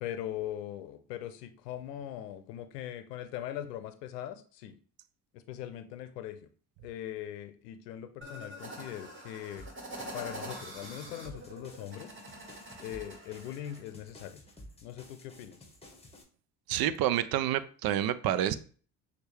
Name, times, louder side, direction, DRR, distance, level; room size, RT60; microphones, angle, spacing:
voice 1, 0.0-4.8 5.3-6.5 6.8-9.7 10.1-12.2 12.8-14.4 14.8-15.6, left 11 dB, 85° left, 10 dB, 0.7 m, -41 dB
sound 1, 8.2-13.8, right 1 dB, 25° right, 1.8 m, -45 dB
sound 2, 9.6-16.2, left 1 dB, 15° left, 1.2 m, -53 dB
voice 2, 16.7-18.6, right 12 dB, 50° right, 14 dB, 0.5 m, -28 dB
6.1 x 2.4 x 3.4 m, 0.41 s
hypercardioid pair, 60°, 47 cm